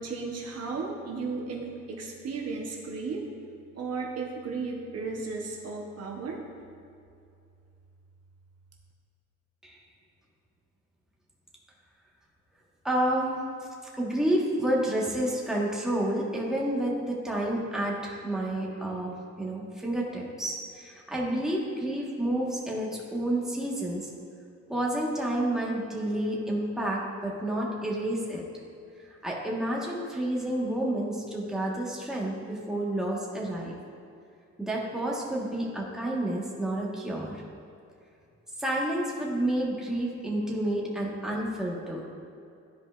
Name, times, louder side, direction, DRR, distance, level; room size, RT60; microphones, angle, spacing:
voice 1, 0.0-3.3 3.7-6.4, right 4 dB, 55° right, 0 dB, 1.0 m, -34 dB
voice 2, 12.8-13.4 14.0-24.1 24.7-28.4 29.2-33.7 34.6-37.4 38.6-42.0, right 1 dB, ahead, -3 dB, 1.3 m, -30 dB
12.0 x 5.0 x 2.4 m, 2.5 s
cardioid pair, 90°, 30 cm